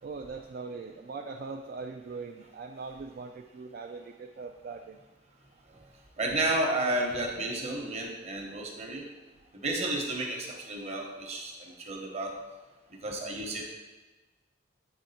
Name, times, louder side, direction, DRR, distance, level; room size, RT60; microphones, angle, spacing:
voice 1, 0.0-5.0, right 4 dB, 50° right, 4 dB, 0.3 m, -41 dB
voice 2, 6.2-9.0 9.5-12.4 13.0-13.7, right 1 dB, 35° right, 0 dB, 1.0 m, -32 dB
8.0 x 3.5 x 4.1 m, 1.2 s
head